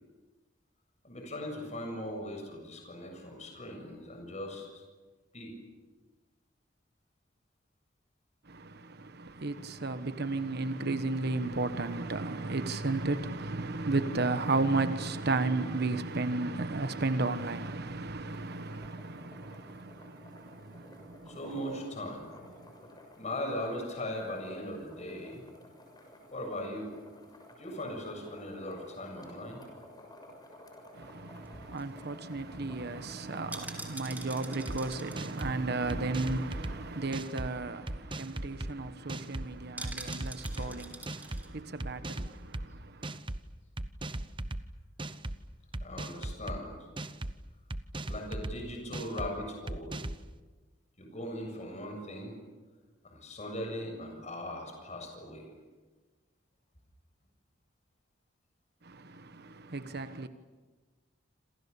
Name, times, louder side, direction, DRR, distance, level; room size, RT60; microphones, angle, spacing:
voice 1, 1.0-4.8 5.3-5.5 21.3-22.3 23.2-25.4 26.3-26.9 27.6-29.6 40.5-40.9 45.8-46.8 48.1-50.0 51.0-52.4 53.0-55.5, left 1 dB, 40° left, 7.4 m, -39 dB
voice 2, 8.5-21.4 30.9-43.2 58.8-60.3, right 3 dB, 60° right, 1.3 m, -34 dB
Pot of Water Boiling, 18.3-37.2, left 1 dB, 20° left, 6.8 m, -54 dB
sound 1, 31.4-36.7 37.0-37.1 37.3-37.6 38.0-38.1 38.3-38.7 39.8-41.5 41.8-41.9, right 2 dB, 10° right, 3.9 m, -46 dB
sound 2, 34.7-34.8 35.2-35.5 35.9-36.7 37.1-37.5 37.9-38.7 39.1-39.5 39.8-40.7 41.1-41.4 41.8-42.6 43.0-43.4 43.8-44.6 45.0-45.4 45.7-46.6 47.0-47.3 47.7-48.5 48.9-49.3 49.7-50.2, right 1 dB, 25° right, 1.0 m, -37 dB
28.0 x 27.5 x 7.1 m
head